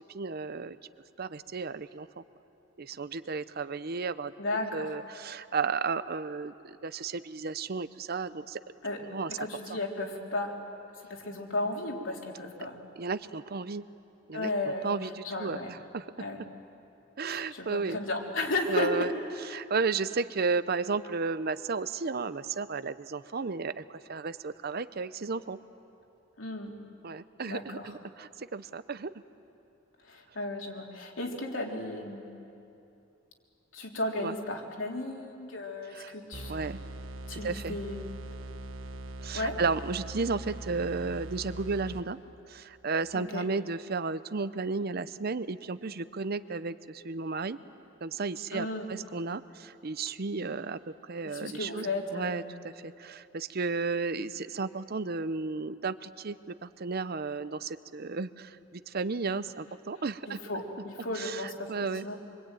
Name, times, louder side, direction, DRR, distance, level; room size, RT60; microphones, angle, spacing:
voice 1, 0.1-0.8 1.2-2.2 2.8-4.3 4.7-8.6 9.1-9.3 9.7-9.8 13.0-13.8 14.3-16.1 17.2-18.0 18.7-19.1 19.5-25.6 27.0-29.1 34.2-34.3 35.9-36.1 36.5-36.8 37.3-37.8 39.2-42.2 42.5-47.6 48.0-50.8 51.1-51.9 52.1-60.4 61.1-62.1, right 4 dB, 50° right, 14 dB, 0.7 m, -33 dB
voice 2, 4.4-4.9 8.8-9.0 9.4-10.6 11.1-12.8 14.3-14.9 15.2-15.7 16.2-16.4 17.2-19.1 26.4-26.7 27.5-27.9 30.1-32.3 33.7-36.5 37.3-38.0 39.3-39.6 43.1-43.4 48.5-48.9 51.2-52.5 60.3-61.7 62.0-62.2, left 2 dB, 75° left, 0 dB, 3.7 m, -34 dB
sound 1, 36.3-42.4, right 1 dB, 90° right, 1.3 m, -42 dB
25.5 x 24.0 x 9.2 m, 2.7 s
head